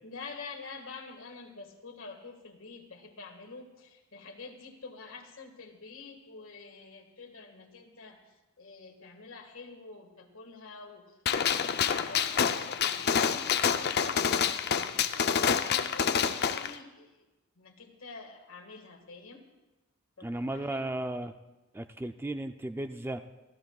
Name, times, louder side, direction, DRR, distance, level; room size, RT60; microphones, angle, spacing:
voice 1, 0.0-17.3 17.6-19.4 20.2-20.9, left 4 dB, 70° left, 4 dB, 1.8 m, -47 dB
Gunshot gunfire, 11.3-16.7, left 7 dB, 50° left, 0.5 m, -27 dB
voice 2, 20.2-21.3 21.7-23.2, right 1 dB, 10° right, 8 dB, 0.4 m, -35 dB
26.0 x 14.5 x 2.4 m, 1.0 s
head